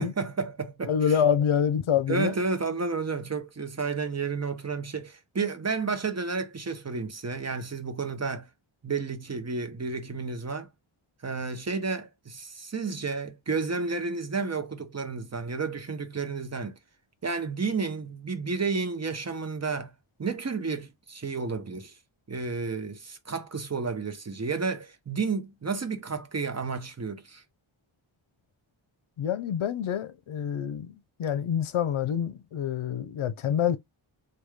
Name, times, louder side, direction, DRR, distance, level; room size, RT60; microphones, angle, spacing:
voice 1, 0.0-0.9 2.1-8.5 8.8-10.7 11.2-16.8 17.2-19.9 20.2-21.9 22.3-27.4, right 4 dB, 30° right, 0.7 m, -31 dB
voice 2, 0.8-2.3 29.2-33.8, left 8 dB, 75° left, 0.6 m, -27 dB
3.4 x 2.3 x 3.1 m
wide cardioid pair, 105°, 50 cm